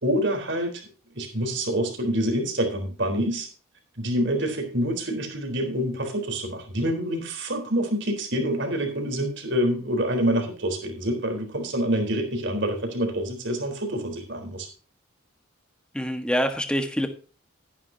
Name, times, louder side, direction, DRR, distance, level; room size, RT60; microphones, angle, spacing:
voice 1, 0.0-0.9 1.1-3.5 4.0-14.7, equal, 55° right, 5 dB, 3.9 m, -26 dB
voice 2, 15.9-17.1, equal, 5° left, 7 dB, 1.4 m, -25 dB
13.5 x 11.0 x 2.8 m, 0.36 s
head